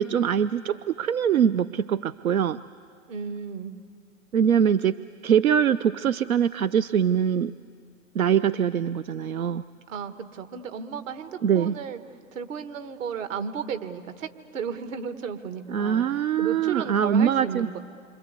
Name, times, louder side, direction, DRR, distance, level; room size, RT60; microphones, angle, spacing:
voice 1, 0.0-2.6 4.3-7.5 8.1-9.6 11.4-11.7 15.7-17.7, right 8 dB, 90° right, 14 dB, 0.6 m, -23 dB
voice 2, 3.1-3.7 9.9-12.0 12.3-16.0 16.4-17.8, right 7 dB, 65° right, 8 dB, 1.8 m, -34 dB
27.5 x 25.5 x 8.2 m, 2.1 s
hypercardioid pair, 120°, 42 cm